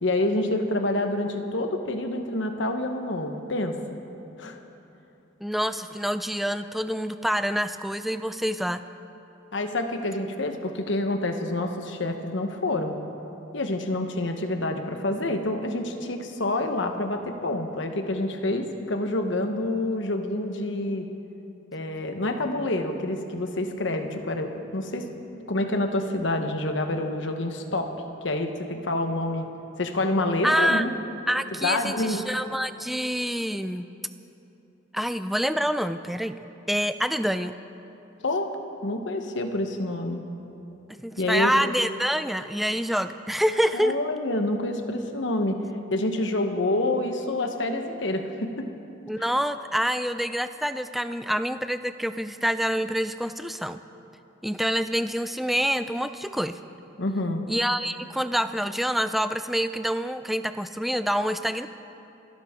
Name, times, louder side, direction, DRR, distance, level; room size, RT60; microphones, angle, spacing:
voice 1, 0.0-3.7 4.4-4.6 9.5-13.0 13.5-21.0 21.7-25.1 25.3-27.9 28.2-29.5 29.8-30.9 31.6-32.2 38.2-38.5 38.8-40.2 41.2-41.6 43.7-45.6 45.9-48.6 49.2-49.3 57.0-57.4, left 2 dB, 70° left, 5 dB, 1.1 m, -27 dB
voice 2, 5.4-8.8 30.4-30.8 31.3-33.9 34.9-36.4 36.7-37.5 41.0-44.0 49.1-53.8 54.4-56.6 57.5-61.7, equal, ahead, 10 dB, 0.3 m, -26 dB
29.0 x 11.5 x 3.7 m, 3.0 s
head